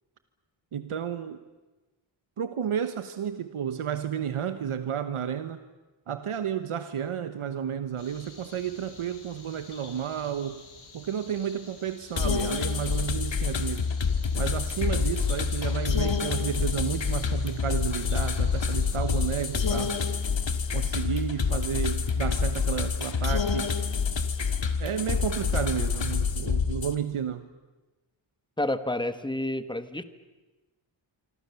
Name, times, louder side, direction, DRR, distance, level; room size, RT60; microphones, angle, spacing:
voice 1, 0.7-1.4 2.4-5.6 6.1-10.6 10.9-13.9 14.3-20.0 20.7-23.7 24.8-27.4, right 8 dB, 90° right, 10 dB, 1.1 m, -32 dB
sound 1, 8.0-20.2, left 4 dB, 85° left, 5.9 m, -50 dB
sound 2, 12.2-26.9, left 5 dB, 65° left, 1.9 m, -27 dB
voice 2, 28.6-30.0, left 1 dB, 10° left, 11 dB, 1.3 m, -29 dB
26.0 x 25.5 x 7.0 m, 1.2 s
wide cardioid pair, 135°, 49 cm